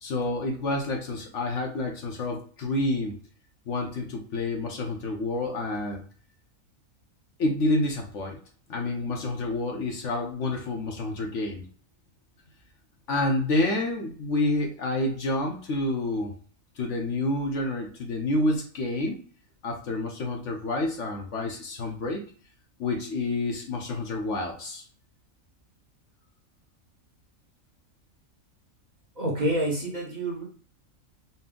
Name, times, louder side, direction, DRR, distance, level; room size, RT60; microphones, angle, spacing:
voice 1, 0.0-3.1 3.7-6.0 7.4-8.4 8.7-11.7 13.1-16.3 16.8-19.2 19.6-22.2 22.8-24.8, left 2 dB, 65° left, 2 dB, 1.0 m, -28 dB
voice 2, 29.2-30.4, right 1 dB, 35° right, -2 dB, 1.0 m, -27 dB
4.2 x 2.0 x 3.7 m, 0.43 s
omnidirectional pair, 1.4 m